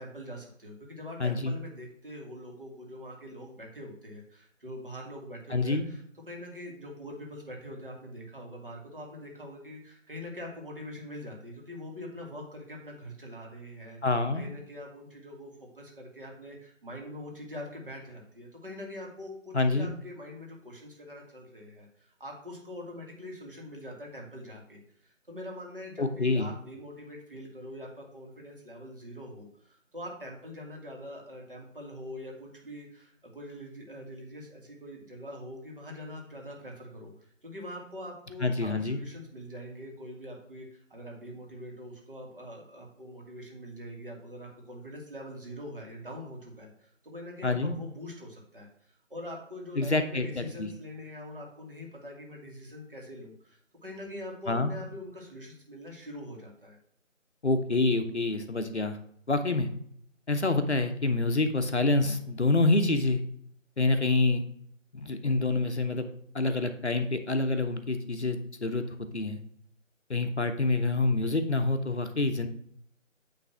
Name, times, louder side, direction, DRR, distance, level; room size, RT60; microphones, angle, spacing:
voice 1, 0.0-14.0 14.3-56.8, left 1 dB, 45° right, 0 dB, 2.0 m, -43 dB
voice 2, 1.2-1.5 5.5-5.9 14.0-14.5 19.5-19.9 26.0-26.5 38.4-39.0 47.4-47.7 49.8-50.7 54.5-54.7 57.4-59.0 59.3-59.7 60.3-63.2 63.8-64.4 64.9-66.0 66.3-68.8 69.1-69.4 70.1-72.5, left 2 dB, 55° left, 7 dB, 0.9 m, -27 dB
9.1 x 3.4 x 5.8 m, 0.65 s
figure-of-eight pair, 165°, 39 cm